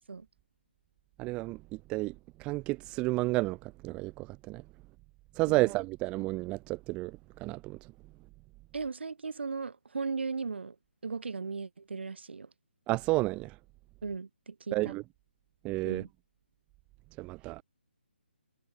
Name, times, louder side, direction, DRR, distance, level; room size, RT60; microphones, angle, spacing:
voice 1, 1.2-1.6 1.9-2.1 2.4-4.6 5.4-7.8 12.9-13.5 14.7-15.0 15.6-16.0 17.2-17.6, right 21 dB, 15° right, 0.8 m, -31 dB
voice 2, 8.7-10.8 11.0-12.5 14.0-14.9 15.8-16.1, right 4 dB, 70° right, 2.4 m, -37 dB
figure-of-eight pair, 150°, 6 cm